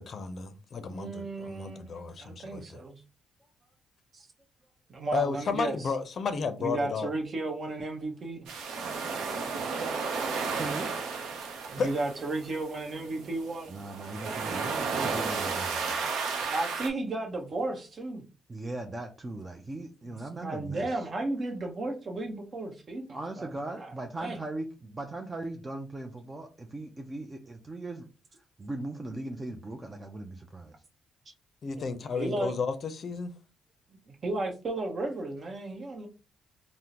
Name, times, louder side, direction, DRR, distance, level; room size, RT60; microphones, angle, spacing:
voice 1, 0.0-2.8 5.1-7.1 11.8-11.9 31.6-33.3, left 5 dB, 50° left, 0.5 m, -33 dB
voice 2, 0.9-3.0 4.1-4.3 4.9-5.9 6.6-9.0 11.7-13.7 14.9-15.1 16.5-18.2 20.1-23.9 24.2-24.4 31.7-32.5 34.1-36.1, right 2 dB, 45° right, 0.9 m, -34 dB
sound 1, 8.5-16.9, right 5 dB, 85° right, 0.6 m, -33 dB
voice 3, 10.6-10.9 13.7-16.1 18.5-21.0 23.1-28.1 28.6-30.8, right 2 dB, 25° right, 0.4 m, -39 dB
3.5 x 2.1 x 2.8 m
cardioid pair, 90°, 0 cm